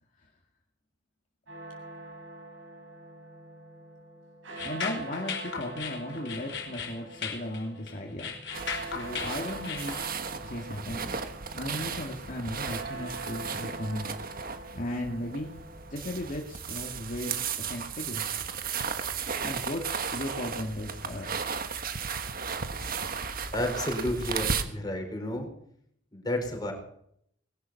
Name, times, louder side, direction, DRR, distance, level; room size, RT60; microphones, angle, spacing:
sound 1, 1.5-16.4, right 2 dB, 80° right, 6.5 m, -44 dB
sound 2, 4.6-10.1, left 6 dB, 65° left, 3.4 m, -37 dB
voice 1, 4.6-8.4 8.8-10.0 10.3-11.2 11.5-14.1 14.7-15.5 15.9-18.2 19.4-21.4, left 1 dB, 45° left, 0 dB, 2.1 m, -36 dB
sound 3, 8.5-24.6, right 6 dB, 50° right, 1.5 m, -35 dB
voice 2, 23.5-25.5 26.1-26.7, left 1 dB, 20° left, 2 dB, 4.7 m, -31 dB
20.5 x 11.5 x 5.9 m, 0.69 s
head